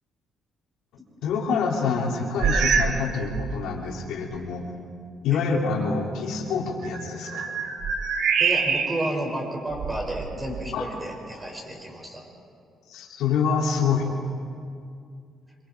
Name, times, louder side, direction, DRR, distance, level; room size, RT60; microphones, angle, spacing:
voice 1, 1.2-4.6 5.2-7.5 10.7-10.8 12.9-14.1, left 5 dB, 85° left, -1 dB, 3.1 m, -26 dB
sound 1, 2.4-3.0 3.3-3.7 4.3-4.4 6.8-9.2 9.7-10.7, right 6 dB, 80° right, 1.9 m, -25 dB
voice 2, 8.4-12.2, right 1 dB, 20° right, 0 dB, 5.9 m, -31 dB
26.5 x 23.5 x 4.7 m, 2.4 s
cardioid pair, 90°, 0 cm